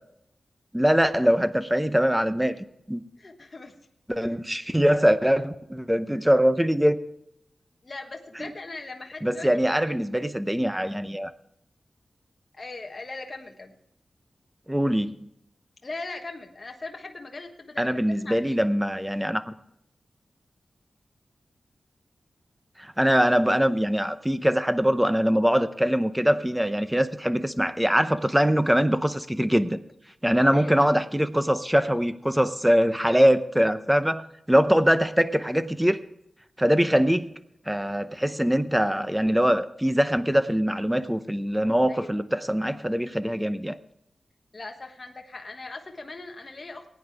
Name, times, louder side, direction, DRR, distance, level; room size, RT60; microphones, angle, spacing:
voice 1, 0.7-2.6 2.9-3.0 4.1-7.0 8.4-8.5 9.2-11.3 14.7-15.3 17.8-19.5 22.8-29.8 30.2-36.0 36.6-37.3 37.7-43.8, equal, 5° right, 11 dB, 0.7 m, -23 dB
voice 2, 3.2-3.7 4.3-4.4 7.8-9.5 9.9-10.1 12.5-13.7 15.8-17.9 18.2-18.6 30.5-30.9 41.9-42.1 44.5-46.9, left 3 dB, 40° left, 2 dB, 1.3 m, -39 dB
19.5 x 9.3 x 3.5 m, 0.79 s
wide cardioid pair, 115°, 0 cm